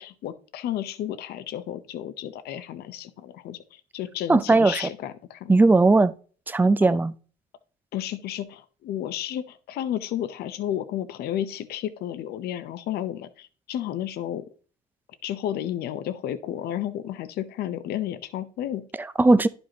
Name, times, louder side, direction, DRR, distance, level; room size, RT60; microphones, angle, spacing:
voice 1, 0.0-5.5 6.8-7.0 7.9-14.5 15.2-18.9, left 11 dB, 70° left, 0.7 m, -32 dB
voice 2, 4.3-4.8 5.5-6.1 6.5-7.1 19.0-19.5, right 3 dB, 10° right, 0.4 m, -18 dB
11.0 x 5.3 x 2.9 m
cardioid pair, 110°, 17 cm